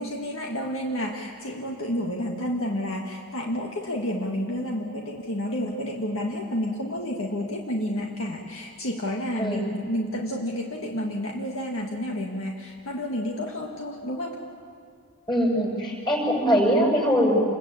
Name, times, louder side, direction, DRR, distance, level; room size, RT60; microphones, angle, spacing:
voice 1, 0.0-14.4, equal, 60° left, 1 dB, 1.9 m, -30 dB
voice 2, 9.4-9.8 15.3-17.4, equal, 20° left, -1 dB, 7.1 m, -22 dB
28.0 x 22.5 x 8.7 m, 2.2 s
head